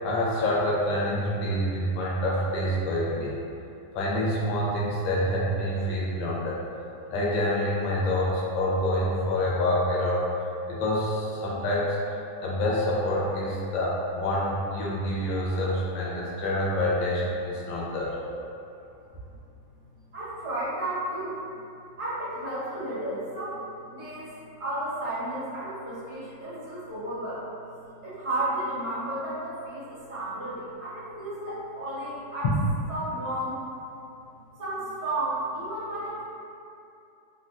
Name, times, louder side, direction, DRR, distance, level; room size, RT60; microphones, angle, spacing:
voice 1, 0.0-3.3 3.9-6.6 7.1-10.3 10.7-12.0 12.4-18.2 32.4-32.5, left 1 dB, 75° left, -5 dB, 1.3 m, -27 dB
voice 2, 19.8-21.5 22.0-32.5 32.9-33.6 34.6-36.2, right 1 dB, 45° right, -12 dB, 1.1 m, -33 dB
3.7 x 2.1 x 2.5 m, 2.6 s
omnidirectional pair, 2.1 m